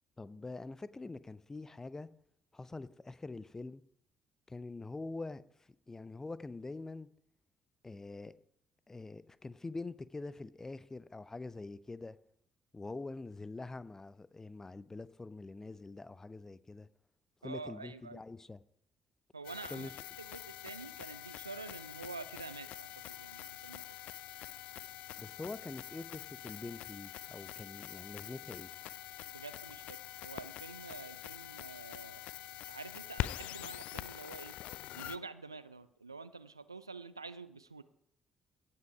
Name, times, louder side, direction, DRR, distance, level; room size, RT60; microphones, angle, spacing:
voice 1, 0.2-2.1 2.5-3.8 4.5-5.4 5.9-7.1 7.8-8.3 8.9-12.2 12.7-16.9 17.4-18.6 19.7-19.9 25.2-28.7, left 3 dB, 20° left, 0.6 m, -45 dB
voice 2, 17.4-18.2 19.3-19.9 20.2-24.0 29.3-32.3 32.7-34.6 34.9-37.8, right 4 dB, 90° right, 0.4 m, -47 dB
sound 1, 19.4-35.2, left 14 dB, 60° left, 0.3 m, -45 dB
17.0 x 5.9 x 4.9 m
figure-of-eight pair, 45°, 2 cm